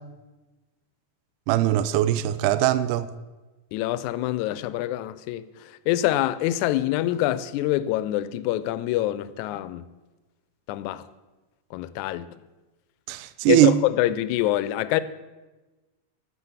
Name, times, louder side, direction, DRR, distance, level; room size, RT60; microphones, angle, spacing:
voice 1, 1.5-3.1 13.1-13.7, right 14 dB, 90° right, 2.1 m, -21 dB
voice 2, 3.7-9.9 10.7-11.1 11.7-12.4 13.5-15.0, left 14 dB, 80° left, 1.9 m, -26 dB
12.5 x 6.7 x 7.2 m
omnidirectional pair, 3.7 m